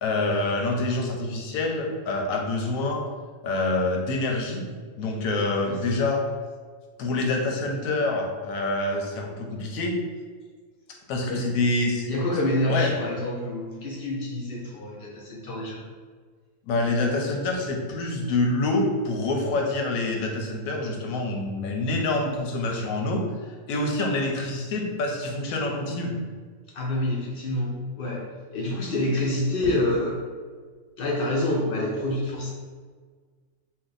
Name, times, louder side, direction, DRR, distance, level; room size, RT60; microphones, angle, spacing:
voice 1, 0.0-3.0 3.4-4.6 5.0-6.2 7.0-10.0 11.1-12.1 12.7-12.9 16.7-26.1, left 2 dB, 85° left, 2 dB, 1.0 m, -26 dB
voice 2, 5.6-6.1 11.3-11.5 12.0-15.8 26.7-30.2 31.0-32.5, left 1 dB, 65° left, -2 dB, 0.5 m, -27 dB
2.7 x 2.2 x 3.9 m, 1.5 s
omnidirectional pair, 1.4 m